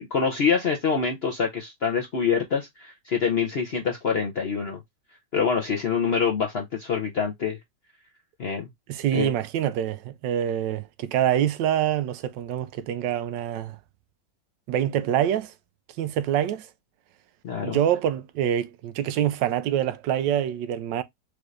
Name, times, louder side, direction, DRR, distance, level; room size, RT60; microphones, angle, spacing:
voice 1, 0.0-4.8 5.3-7.6 8.4-8.7 9.1-9.3 17.4-17.8, left 6 dB, 60° left, 0.6 m, -25 dB
voice 2, 8.9-13.8 14.7-15.5 16.0-16.7 17.6-21.0, right 10 dB, 85° right, 1.3 m, -25 dB
4.8 x 2.6 x 3.1 m
omnidirectional pair, 1.9 m